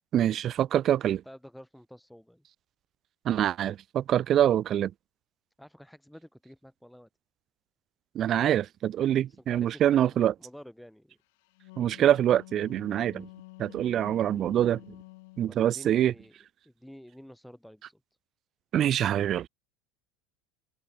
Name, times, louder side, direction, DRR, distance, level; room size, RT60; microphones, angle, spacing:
voice 1, 0.1-1.2 3.3-4.9 8.2-10.3 11.8-13.3 13.6-14.8 15.4-16.1 18.7-19.5, right 11 dB, 40° right, 0.4 m, -25 dB
voice 2, 1.2-2.4 5.6-7.1 9.3-11.2 15.4-16.3 16.6-18.0, equal, ahead, 3.1 m, -50 dB
Wind instrument woodwind instrument, 11.4-15.6, left 25 dB, 80° left, 3.5 m, -49 dB
supercardioid pair, 125°, 0 cm